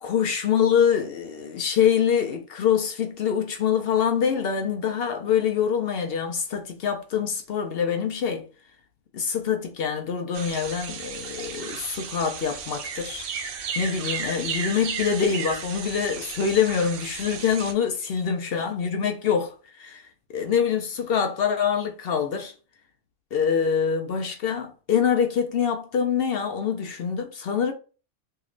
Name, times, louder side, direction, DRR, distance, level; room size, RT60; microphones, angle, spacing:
voice 1, 0.0-8.4 9.1-13.3 13.8-22.5 23.3-27.7, left 7 dB, 60° left, 0.7 m, -25 dB
sound 1, 10.3-17.7, right 6 dB, 80° right, 0.9 m, -34 dB
3.0 x 2.8 x 2.4 m
omnidirectional pair, 1.3 m